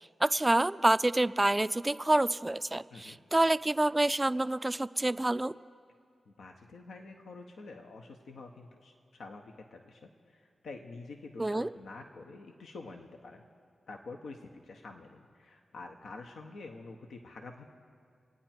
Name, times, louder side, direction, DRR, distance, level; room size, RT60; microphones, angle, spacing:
voice 1, 0.2-5.5 11.4-11.7, right 1 dB, 20° right, 14 dB, 0.4 m, -27 dB
voice 2, 6.3-13.4 13.9-17.7, left 3 dB, 80° left, 3 dB, 0.9 m, -47 dB
27.0 x 9.2 x 4.4 m, 2.3 s
cardioid pair, 45°, 0 cm